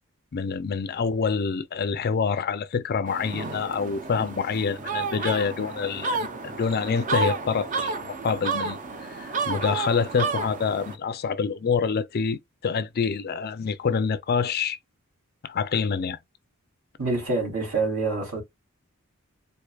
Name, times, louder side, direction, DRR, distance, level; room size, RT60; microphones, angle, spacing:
voice 1, 0.3-14.8 15.4-16.2, left 5 dB, 45° left, 0.4 m, -27 dB
sound 1, 3.1-10.9, right 4 dB, 35° right, 0.6 m, -31 dB
voice 2, 17.0-18.4, right 3 dB, 75° right, 3.0 m, -26 dB
4.5 x 2.7 x 2.3 m
head